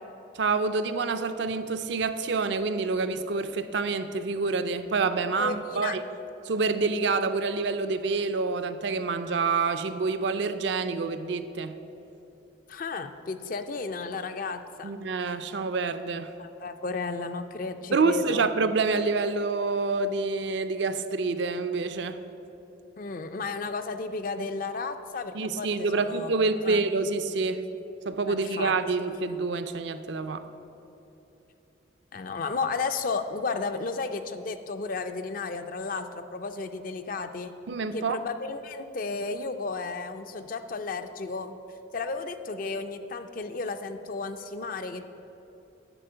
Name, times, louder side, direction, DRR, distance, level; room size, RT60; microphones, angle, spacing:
voice 1, 0.3-6.0 6.4-11.7 14.8-16.3 17.9-22.2 25.3-27.6 28.1-30.4 37.7-38.2, right 4 dB, 65° right, 10 dB, 0.5 m, -27 dB
voice 2, 5.4-6.0 12.7-14.9 16.4-18.5 23.0-26.3 26.6-26.8 28.3-28.7 32.1-37.5 37.9-41.5 41.9-45.1, left 4 dB, 45° left, 8 dB, 0.4 m, -33 dB
10.0 x 4.4 x 7.8 m, 3.0 s
head